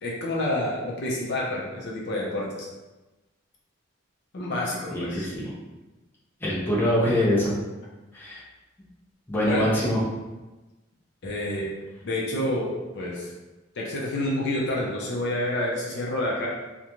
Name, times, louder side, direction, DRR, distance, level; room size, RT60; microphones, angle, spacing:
voice 1, 0.0-2.7 4.3-5.3 9.4-9.7 11.2-11.7 12.0-13.3 13.8-16.5, left 1 dB, 60° left, -3 dB, 0.5 m, -28 dB
voice 2, 4.9-5.5 6.4-7.5 8.1-8.4 9.3-10.0, left 1 dB, 10° left, -8 dB, 0.6 m, -24 dB
2.5 x 2.1 x 2.9 m, 1.1 s
head